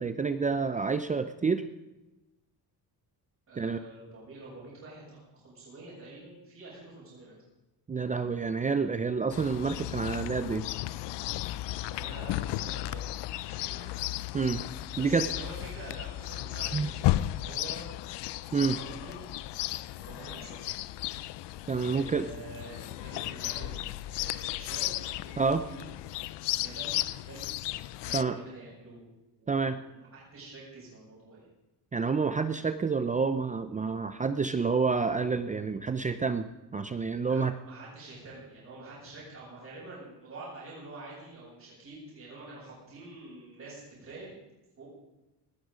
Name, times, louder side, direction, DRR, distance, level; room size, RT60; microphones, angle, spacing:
voice 1, 0.0-1.6 3.6-3.8 7.9-10.6 14.3-14.6 15.0-15.3 16.7-16.9 18.5-18.8 21.7-22.3 25.4-25.6 28.1-28.4 29.5-29.8 31.9-36.5 36.7-37.5, right 5 dB, 20° right, 10 dB, 0.5 m, -28 dB
voice 2, 3.5-7.3 11.7-14.0 15.0-17.8 18.5-19.3 20.0-20.8 21.2-21.5 21.9-24.9 25.2-25.9 26.6-27.5 28.0-29.0 29.3-31.5 37.2-44.3 44.8-44.9, right 2 dB, 40° right, -8 dB, 7.5 m, -47 dB
Chirp tweet, 9.3-28.2, left 15 dB, 90° left, 0.6 m, -34 dB
20.0 x 12.5 x 5.1 m, 1.0 s
cardioid pair, 155°, 40 cm